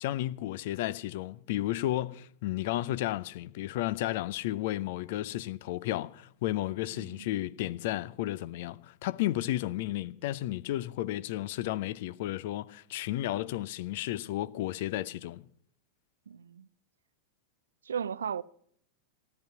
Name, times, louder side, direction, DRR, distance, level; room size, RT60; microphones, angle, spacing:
voice 1, 0.0-15.5, left 15 dB, 50° left, 0.6 m, -33 dB
voice 2, 6.9-7.3 16.3-16.7 17.8-18.4, right 7 dB, 70° right, 0.4 m, -36 dB
13.5 x 12.0 x 5.7 m
figure-of-eight pair, 90°, 0 cm